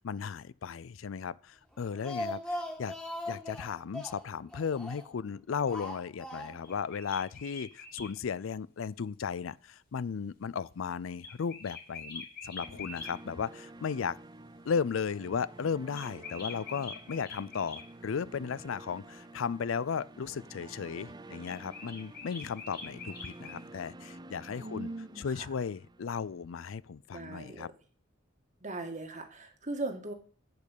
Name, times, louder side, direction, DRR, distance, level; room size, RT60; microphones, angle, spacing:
voice 1, 0.0-2.9 3.3-14.2 14.7-24.9 25.2-27.7, left 6 dB, 80° left, 0.4 m, -35 dB
Speech, 1.7-5.2 5.7-6.8 7.1-7.2 7.5-7.6, left 1 dB, 5° left, 2.0 m, -40 dB
sound 1, 6.6-8.1 11.2-13.1 15.9-17.9 21.4-23.6, left 4 dB, 50° left, 2.5 m, -44 dB
sound 2, 12.6-26.7, right 2 dB, 20° right, 0.5 m, -51 dB
voice 2, 24.6-25.5 27.1-27.7 28.6-30.1, right 2 dB, 40° right, 1.8 m, -39 dB
10.5 x 5.3 x 8.4 m
head